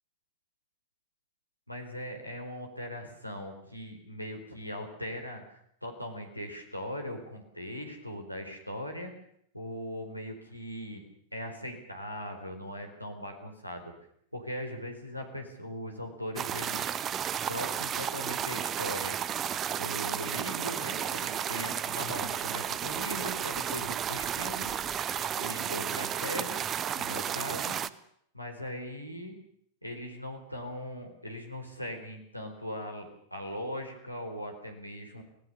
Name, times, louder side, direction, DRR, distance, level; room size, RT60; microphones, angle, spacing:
voice 1, 1.7-9.1 9.5-11.0 11.3-13.9 14.3-17.0 17.5-19.2 19.7-24.8 25.3-27.8 28.3-29.3 29.8-35.2, equal, 90° left, 4 dB, 4.1 m, -39 dB
sound 1, 16.4-27.9, right 9 dB, 25° right, 0.8 m, -33 dB
24.5 x 18.0 x 6.9 m, 0.69 s
figure-of-eight pair, 90°, 0 cm